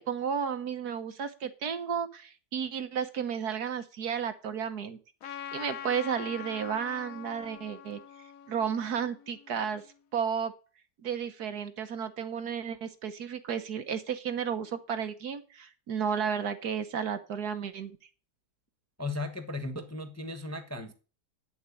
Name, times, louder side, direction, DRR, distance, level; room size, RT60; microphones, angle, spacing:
voice 1, 0.0-5.0 5.2-8.0 8.5-9.8 10.1-10.5 11.0-18.0, right 7 dB, 60° right, 1.6 m, -33 dB
Trumpet, 5.2-9.9, left 10 dB, 60° left, 1.1 m, -44 dB
voice 2, 19.0-20.9, left 2 dB, 10° left, 0.9 m, -36 dB
10.5 x 7.5 x 8.4 m
omnidirectional pair, 1.9 m